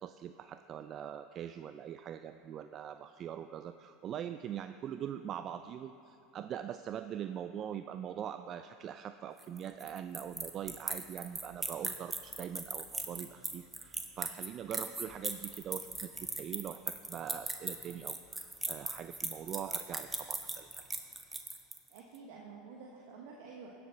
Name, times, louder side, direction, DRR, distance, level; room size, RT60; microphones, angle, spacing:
voice 1, 0.0-16.1 16.4-20.9, right 9 dB, 45° right, 11 dB, 0.4 m, -42 dB
sound 1, 9.4-22.0, right 3 dB, 15° right, 1.2 m, -38 dB
voice 2, 21.9-23.7, right 5 dB, 65° right, -1 dB, 1.3 m, -50 dB
16.5 x 7.7 x 5.8 m, 2.8 s
hypercardioid pair, 85°, 0 cm